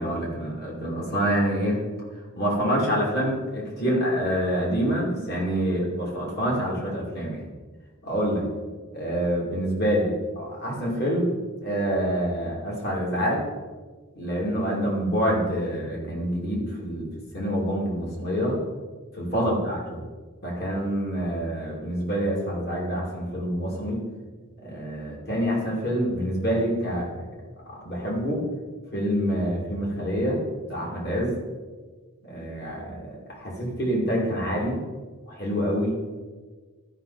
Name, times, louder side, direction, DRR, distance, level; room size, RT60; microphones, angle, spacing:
voice 1, 0.0-1.8 2.3-7.4 8.0-8.5 8.9-13.4 14.1-17.1 17.3-18.6 19.2-20.0 20.4-24.0 24.6-27.1 27.8-28.5 28.9-30.4 30.7-31.4 32.2-34.8 35.3-35.9, equal, 50° left, -3 dB, 2.7 m, -26 dB
12.5 x 5.6 x 4.1 m, 1.4 s
head